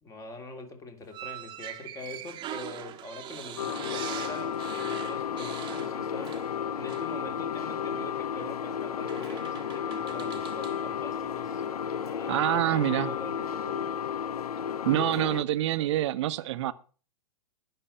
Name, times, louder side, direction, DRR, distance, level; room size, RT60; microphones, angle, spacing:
voice 1, 0.0-6.4 6.7-11.6 12.0-13.9, left 2 dB, 15° left, 2.9 m, -43 dB
sound 1, 1.1-6.6 6.9-7.1 8.3-8.5 9.1-10.8, right 11 dB, 25° right, 1.3 m, -42 dB
sound 2, 3.5-15.4, left 8 dB, 85° left, 0.7 m, -33 dB
Wind instrument woodwind instrument, 8.2-11.1 11.4-14.6, right 2 dB, 5° right, 2.0 m, -55 dB
voice 2, 12.3-13.1 14.8-16.7, right 14 dB, 50° right, 0.9 m, -26 dB
19.5 x 6.8 x 5.6 m
hypercardioid pair, 125°, 19 cm